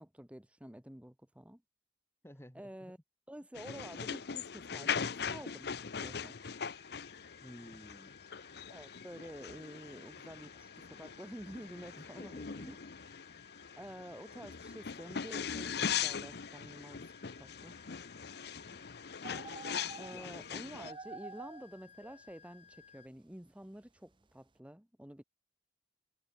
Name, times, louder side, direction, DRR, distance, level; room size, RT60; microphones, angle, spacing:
voice 1, 0.0-1.6 2.5-3.0 3.3-5.7 6.0-6.4 8.7-12.8 13.8-17.0 17.4-17.8 20.0-25.2, equal, 5° right, 1.0 m, -49 dB
voice 2, 2.2-2.9 7.4-8.1 12.0-12.7 18.7-18.9 20.1-20.3, equal, 15° left, 2.3 m, -53 dB
sound 1, 3.5-20.9, left 7 dB, 55° left, 0.7 m, -41 dB
sound 2, 4.0-23.1, left 7 dB, 35° left, 6.2 m, -60 dB
sound 3, 19.2-20.4 20.7-21.7 22.0-22.3, right 3 dB, 25° right, 0.7 m, -48 dB
head